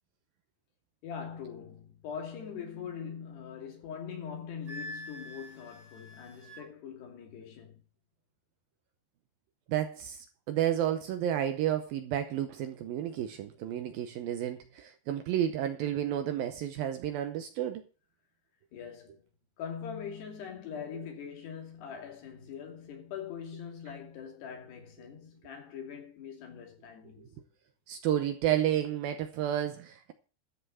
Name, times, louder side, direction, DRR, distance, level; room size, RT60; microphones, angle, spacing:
voice 1, 1.0-7.8 18.7-19.3 19.6-27.3, left 7 dB, 70° left, 4.7 m, -42 dB
Wind instrument woodwind instrument, 4.7-6.7, left 1 dB, 40° right, 2.1 m, -45 dB
voice 2, 9.7-17.8 27.2-27.3 27.9-30.1, right 11 dB, 75° right, 2.3 m, -31 dB
13.5 x 5.7 x 7.5 m
omnidirectional pair, 5.0 m